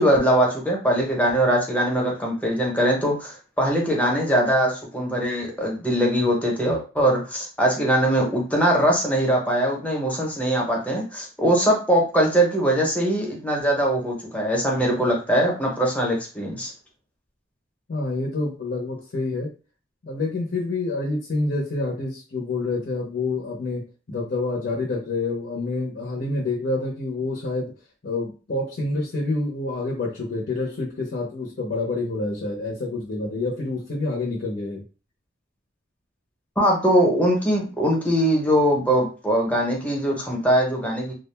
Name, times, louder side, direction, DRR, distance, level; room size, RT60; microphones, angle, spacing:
voice 1, 0.0-16.7 36.6-41.1, right 1 dB, 5° left, -1 dB, 0.7 m, -21 dB
voice 2, 17.9-19.5 20.0-27.7 28.0-34.8, left 2 dB, 55° left, -2 dB, 0.7 m, -27 dB
2.4 x 2.1 x 3.3 m, 0.35 s
head